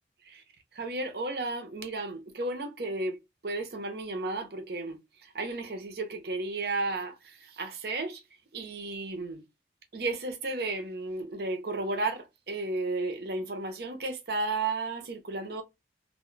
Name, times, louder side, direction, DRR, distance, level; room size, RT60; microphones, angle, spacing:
voice 1, 0.7-8.2 8.5-9.4 9.9-15.6, right 2 dB, 60° right, 0.6 m, -33 dB
2.2 x 2.1 x 3.7 m
head